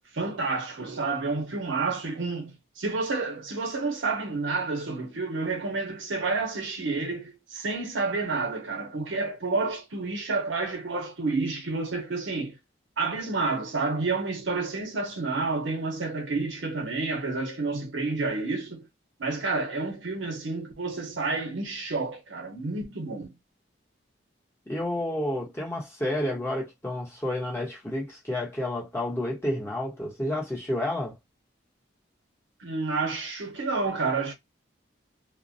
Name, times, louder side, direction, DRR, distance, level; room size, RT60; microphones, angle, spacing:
voice 1, 0.1-12.6 13.0-18.9 19.2-23.4 32.6-34.3, right 3 dB, 90° right, 0.7 m, -29 dB
voice 2, 24.7-31.2, left 1 dB, 15° left, 1.0 m, -30 dB
2.2 x 2.1 x 2.6 m
head